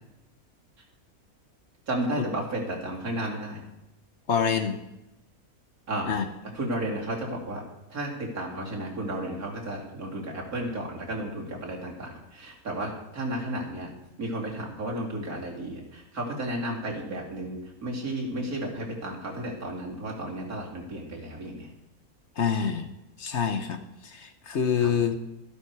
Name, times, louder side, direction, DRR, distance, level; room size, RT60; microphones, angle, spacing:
voice 1, 1.9-3.6 5.9-6.2 6.5-7.6 7.9-13.9 14.2-21.7 24.8-24.9, right 1 dB, 80° right, -2 dB, 3.1 m, -33 dB
voice 2, 4.3-4.8 6.1-6.2 22.4-22.9 23.2-23.8 24.0-25.2, left 7 dB, 55° left, 8 dB, 1.1 m, -26 dB
13.0 x 12.0 x 4.7 m, 0.93 s
omnidirectional pair, 1.5 m